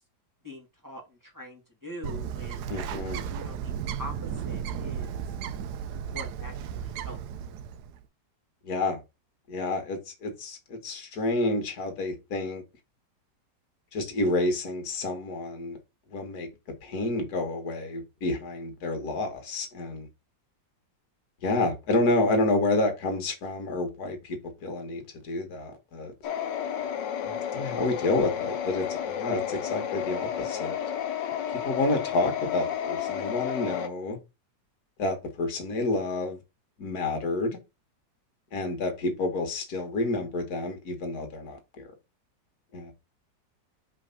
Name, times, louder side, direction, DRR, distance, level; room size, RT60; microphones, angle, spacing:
voice 1, 0.4-2.7 3.3-3.7 4.0-4.1 4.4-5.2 6.0-7.2, left 1 dB, 10° right, 1.6 m, -43 dB
Bird, 2.0-8.0, right 8 dB, 70° right, 1.1 m, -34 dB
voice 2, 2.7-3.2 8.6-9.0 9.5-12.6 13.9-15.8 16.1-16.5 16.8-20.1 21.4-26.1 27.2-30.8 31.6-34.2 35.0-36.4 36.8-37.6 38.5-41.9 42.7-42.9, left 2 dB, 55° left, 1.9 m, -29 dB
sound 1, 26.2-33.9, left 9 dB, 75° left, 1.4 m, -32 dB
5.1 x 3.4 x 5.6 m
omnidirectional pair, 2.0 m